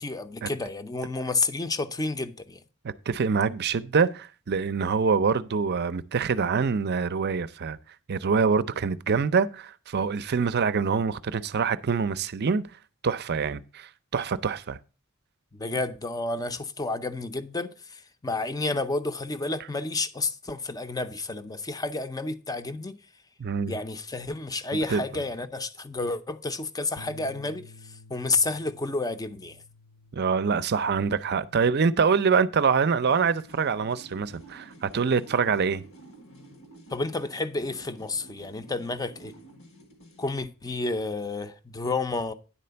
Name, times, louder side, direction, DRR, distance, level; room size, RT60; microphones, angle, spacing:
voice 1, 0.0-2.6 15.5-23.0 23.7-27.6 28.1-29.6 36.9-39.3 40.2-42.3, left 3 dB, 15° left, 0.6 m, -30 dB
voice 2, 2.8-7.8 8.1-12.6 13.0-14.8 23.4-23.7 24.7-25.0 30.1-35.8, right 5 dB, 50° right, 0.5 m, -25 dB
sound 1, 27.0-35.4, left 2 dB, 45° left, 0.8 m, -54 dB
sound 2, 32.9-40.4, right 1 dB, 75° left, 1.4 m, -51 dB
10.0 x 4.3 x 6.8 m
head